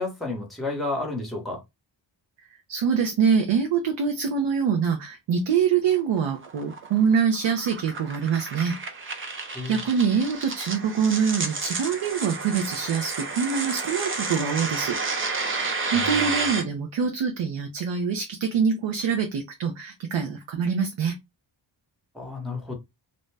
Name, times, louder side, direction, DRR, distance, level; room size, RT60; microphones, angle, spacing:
voice 1, 0.0-1.6 9.5-9.8 15.9-16.4 22.1-22.7, left 2 dB, ahead, 0.8 m, -31 dB
voice 2, 2.7-9.1 9.7-15.0 15.9-21.2, right 6 dB, 90° right, 0.7 m, -25 dB
sound 1, 5.9-16.6, right 4 dB, 30° right, 0.4 m, -31 dB
2.6 x 2.1 x 3.2 m
wide cardioid pair, 180°, 45 cm